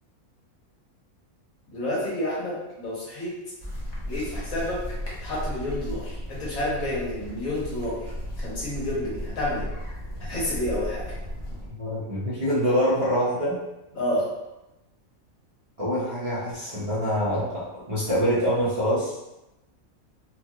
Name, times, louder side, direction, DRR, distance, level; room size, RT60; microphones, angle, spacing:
voice 1, 1.7-3.4 4.1-4.8 5.2-8.1 8.4-9.7 10.2-11.1 13.9-14.3, left 1 dB, 70° left, -7 dB, 1.5 m, -29 dB
sound 1, 3.6-11.7, equal, 30° left, 0.5 m, -35 dB
voice 2, 11.7-13.6 15.8-19.1, equal, 40° right, -12 dB, 0.5 m, -25 dB
3.0 x 2.4 x 2.7 m, 0.95 s
omnidirectional pair, 1.5 m